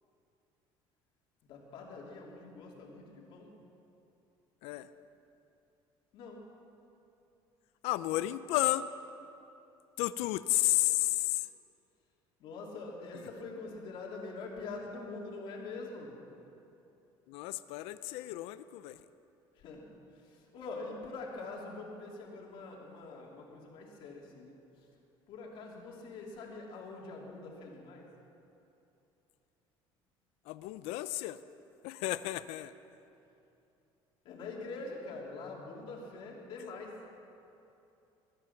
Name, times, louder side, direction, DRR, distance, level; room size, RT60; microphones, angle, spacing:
voice 1, 1.5-3.5 6.1-6.5 12.4-16.1 19.6-19.9 20.3-24.5 25.3-28.0 34.2-36.9, left 3 dB, 60° left, -1 dB, 3.0 m, -44 dB
voice 2, 7.8-8.9 10.0-11.5 13.1-13.2 17.3-19.0 30.5-31.4 31.8-32.7, left 17 dB, 85° left, 14 dB, 0.5 m, -32 dB
21.0 x 11.0 x 5.9 m, 2.8 s
cardioid pair, 155°, 10 cm